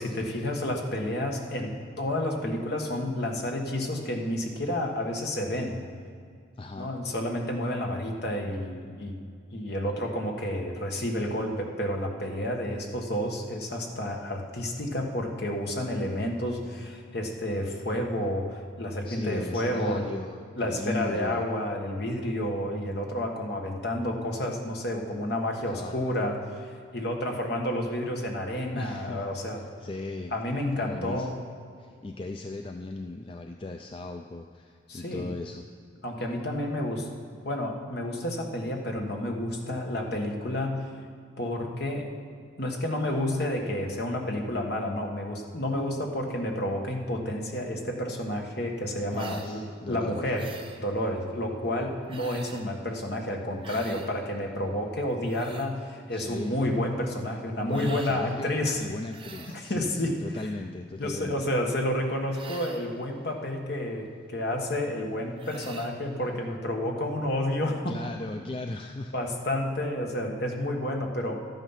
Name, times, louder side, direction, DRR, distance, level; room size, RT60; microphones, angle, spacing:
voice 1, 0.0-5.8 6.8-9.2 9.5-20.1 20.6-29.6 30.3-31.3 34.9-35.3 36.0-37.1 37.4-40.9 41.4-42.1 42.6-50.5 50.8-58.8 59.5-60.2 61.0-68.0 69.1-71.4, left 1 dB, 50° left, 1 dB, 1.4 m, -30 dB
voice 2, 6.6-6.9 19.0-21.5 25.7-26.1 28.7-29.3 29.6-31.4 31.8-35.7 49.1-50.3 56.1-56.6 57.6-58.5 58.8-61.5 67.9-69.1, left 2 dB, 25° left, 5 dB, 0.3 m, -37 dB
sound 1, 49.1-49.5 50.3-50.8 52.1-52.7 53.6-54.1 55.0-55.7 57.7-58.2 59.1-59.6 62.3-62.9 65.4-66.0, right 4 dB, 25° right, 0.8 m, -45 dB
12.0 x 9.1 x 5.7 m, 2.2 s
head